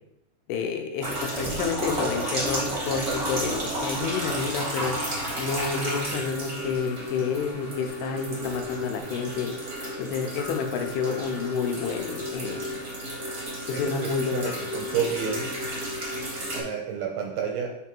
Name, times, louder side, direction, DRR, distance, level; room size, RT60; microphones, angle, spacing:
voice 1, 0.5-4.9 5.4-9.5 10.0-12.7 13.7-14.5, left 5 dB, 85° left, 4 dB, 2.7 m, -29 dB
sound 1, 1.0-16.6, equal, 50° right, 1.0 m, -32 dB
voice 2, 13.7-15.6 16.5-17.8, right 6 dB, 75° right, 2 dB, 2.2 m, -30 dB
8.7 x 3.5 x 4.5 m, 0.84 s
omnidirectional pair, 4.8 m